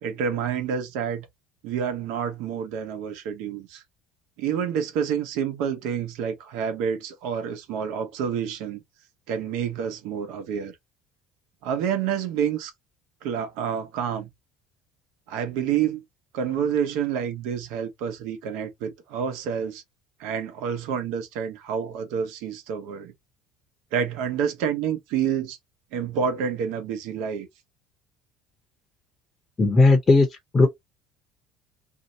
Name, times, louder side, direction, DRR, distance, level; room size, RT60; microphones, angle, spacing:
voice 1, 0.0-1.3 1.6-3.8 4.4-8.8 9.3-10.7 11.6-12.7 13.2-14.3 15.3-16.0 16.3-19.8 20.2-23.1 23.9-25.6 25.9-27.5, right 7 dB, 80° right, 0.9 m, -28 dB
voice 2, 29.6-30.3 30.5-30.7, left 3 dB, 20° left, 0.7 m, -16 dB
2.7 x 2.1 x 3.9 m
cardioid pair, 145°, 0 cm